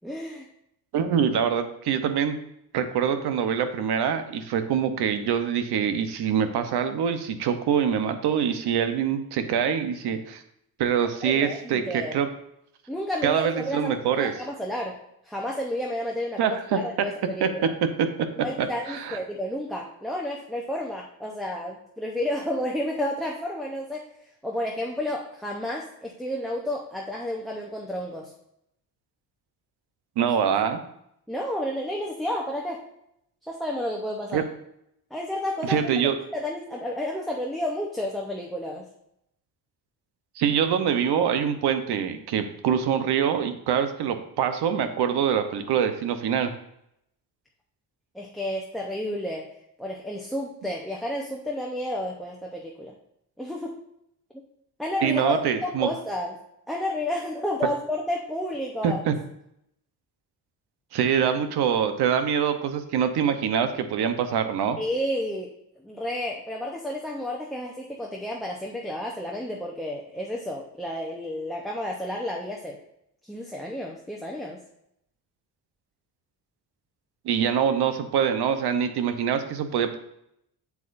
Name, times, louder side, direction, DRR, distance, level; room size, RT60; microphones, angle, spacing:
voice 1, 0.0-0.5 11.2-12.2 12.9-15.0 15.2-17.7 18.4-24.0 24.4-28.3 31.3-32.8 33.5-34.4 35.1-35.8 36.3-38.9 48.1-49.5 49.8-52.9 53.4-53.8 54.8-56.3 56.7-59.0 64.8-65.5 65.8-72.8 73.2-74.6, left 1 dB, ahead, -2 dB, 0.8 m, -31 dB
voice 2, 0.9-2.4 2.7-10.4 10.8-12.3 13.2-14.3 16.4-17.1 17.4-17.5 18.0-18.1 18.6-19.2 30.2-30.8 34.3-34.4 35.6-36.2 40.4-46.5 55.0-55.9 58.8-59.1 60.9-64.8 77.2-80.0, right 8 dB, 90° right, 8 dB, 0.9 m, -24 dB
7.9 x 7.4 x 2.6 m, 0.77 s
cardioid pair, 115°, 38 cm